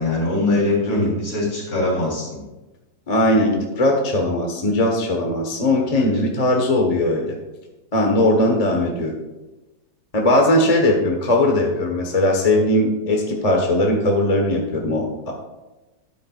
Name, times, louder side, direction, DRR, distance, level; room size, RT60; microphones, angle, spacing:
voice 1, 0.0-2.4 6.0-6.2, left 2 dB, 55° left, -4 dB, 3.8 m, -22 dB
voice 2, 3.1-7.3 7.9-9.1 10.1-15.3, left 1 dB, 25° left, 1 dB, 1.0 m, -19 dB
12.5 x 9.9 x 2.4 m, 1.1 s
omnidirectional pair, 1.8 m